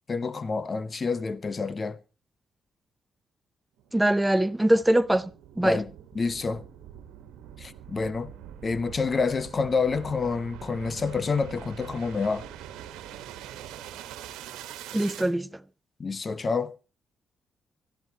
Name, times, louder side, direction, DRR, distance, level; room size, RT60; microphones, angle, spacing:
voice 1, 0.1-2.0 5.6-5.9 6.1-6.6 7.6-8.3 8.6-12.5 16.0-16.7, left 4 dB, 45° left, 1.0 m, -28 dB
sound 1, 3.8-15.3, right 10 dB, 80° right, 1.3 m, -44 dB
voice 2, 3.9-5.3 5.6-5.8 14.9-15.5, right 1 dB, 15° right, 0.6 m, -22 dB
23.5 x 13.0 x 2.9 m
hypercardioid pair, 45°, 0 cm